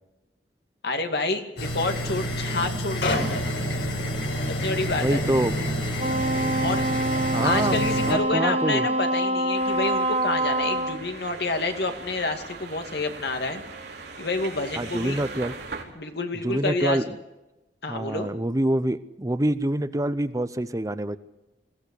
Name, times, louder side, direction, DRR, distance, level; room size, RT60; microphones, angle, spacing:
voice 1, 0.8-3.4 4.5-5.2 6.6-6.8 7.4-13.6 14.2-15.2 15.9-17.0 17.8-18.3, left 3 dB, 65° left, 5 dB, 2.3 m, -28 dB
sound 1, 1.6-8.1, equal, 80° left, 5.2 m, -28 dB
voice 2, 5.0-5.5 7.3-8.9 14.8-15.5 16.4-17.1 17.9-21.2, right 1 dB, 20° right, 13 dB, 0.7 m, -26 dB
Wind instrument woodwind instrument, 6.0-11.0, right 1 dB, 35° right, 1.3 m, -25 dB
sound 2, 9.5-15.8, right 4 dB, 65° right, 4.4 m, -40 dB
21.5 x 16.0 x 8.3 m, 1.0 s
head